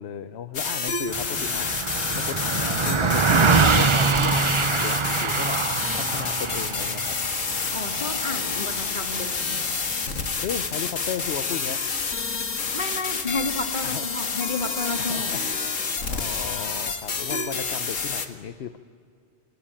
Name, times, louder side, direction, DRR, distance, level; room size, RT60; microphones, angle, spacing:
voice 1, 0.0-5.6 5.9-7.1 10.4-11.8 13.8-14.1 15.0-15.4 16.0-18.8, left 8 dB, 60° left, 11 dB, 1.0 m, -35 dB
sound 1, 0.5-18.3, left 5 dB, 90° left, 2.0 m, -28 dB
Car passing by, 1.1-10.7, right 5 dB, 35° right, 0.5 m, -25 dB
voice 2, 7.7-9.6 12.7-15.3, left 3 dB, 40° left, 5 dB, 2.2 m, -31 dB
28.0 x 19.0 x 8.8 m, 2.4 s
omnidirectional pair, 1.3 m